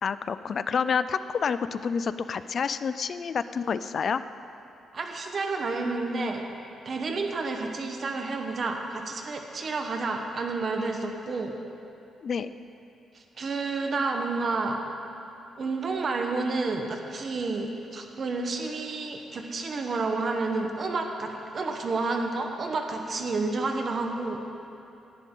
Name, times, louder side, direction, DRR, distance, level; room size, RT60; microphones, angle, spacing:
voice 1, 0.0-4.2 12.2-12.5, left 6 dB, 35° left, 13 dB, 0.3 m, -28 dB
voice 2, 4.9-6.4 6.8-11.5 13.4-14.8 15.6-24.4, right 3 dB, 35° right, 3 dB, 1.0 m, -30 dB
17.5 x 10.5 x 3.8 m, 2.8 s
cardioid pair, 175°, 0 cm